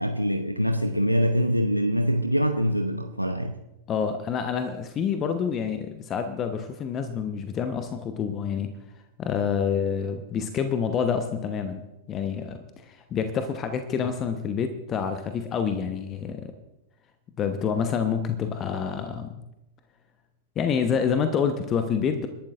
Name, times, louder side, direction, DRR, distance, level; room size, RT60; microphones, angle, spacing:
voice 1, 0.0-3.5, equal, 90° right, 0.7 m, -24 dB
voice 2, 3.9-8.7 9.2-11.8 12.1-16.5 17.4-19.3 20.6-22.3, left 7 dB, 30° left, 1.0 m, -27 dB
28.5 x 11.5 x 2.5 m
figure-of-eight pair, 90°, 0 cm